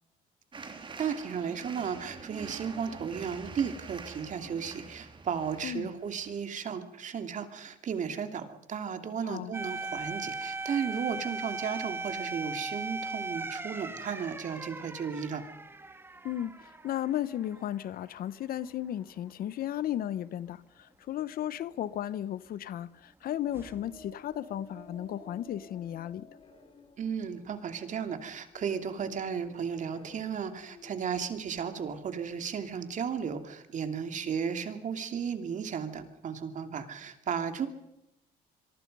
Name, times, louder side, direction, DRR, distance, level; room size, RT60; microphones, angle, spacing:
sound 1, 0.5-6.4, right 4 dB, 30° right, 3.1 m, -46 dB
voice 1, 1.0-15.4 27.0-37.7, right 7 dB, 45° right, 2.7 m, -34 dB
sound 2, 9.5-18.2 18.5-18.6 23.5-24.1, right 3 dB, 15° right, 1.5 m, -39 dB
voice 2, 16.2-26.3, left 11 dB, 60° left, 0.9 m, -35 dB
sound 3, 23.4-33.5, left 3 dB, 35° left, 3.2 m, -54 dB
26.0 x 23.0 x 5.4 m
cardioid pair, 110°, 17 cm